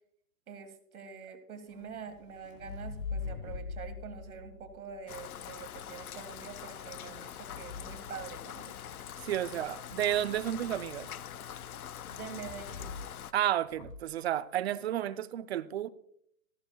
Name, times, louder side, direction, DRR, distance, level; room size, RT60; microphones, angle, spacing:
voice 1, 0.5-8.8 12.1-12.9, right 6 dB, 80° right, 2.0 m, -45 dB
sound 1, 1.7-5.8 6.7-9.1 12.4-13.3 13.6-14.1, left 4 dB, 35° left, 1.5 m, -43 dB
Rain, 5.1-13.3, left 10 dB, 85° left, 0.7 m, -44 dB
voice 2, 9.2-11.1 13.3-15.9, right 12 dB, 50° right, 0.6 m, -31 dB
14.0 x 13.5 x 2.3 m
hypercardioid pair, 155°, 42 cm